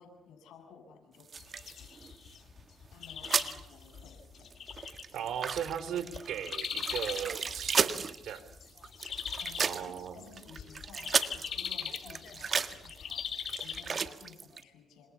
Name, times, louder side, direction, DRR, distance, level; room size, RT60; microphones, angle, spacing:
voice 1, 0.0-1.4 2.9-4.5 9.4-15.1, left 6 dB, 80° left, 7 dB, 7.3 m, -55 dB
sound 1, 1.2-2.6 3.0-3.6 3.9-4.1 4.4-14.6, right 5 dB, 40° right, 1.7 m, -35 dB
sound 2, 1.4-14.1, left 8 dB, 60° left, 3.1 m, -41 dB
voice 2, 5.1-8.4 9.6-10.2, right 9 dB, 75° right, 13 dB, 3.8 m, -37 dB
29.0 x 26.5 x 7.1 m, 0.78 s
cardioid pair, 90°, 0 cm